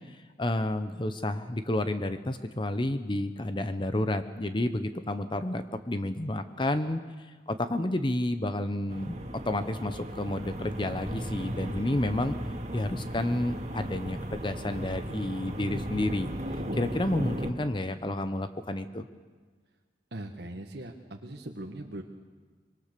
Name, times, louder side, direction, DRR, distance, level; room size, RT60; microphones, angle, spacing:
voice 1, 0.1-7.0 7.5-9.1 9.4-12.3 12.7-19.1, left 1 dB, 25° left, 10 dB, 0.8 m, -30 dB
sound 1, 8.9-17.5, equal, 40° right, 2.2 m, -36 dB
voice 2, 20.1-22.0, right 1 dB, 65° right, 3 dB, 1.5 m, -40 dB
24.5 x 23.5 x 6.8 m, 1.5 s
head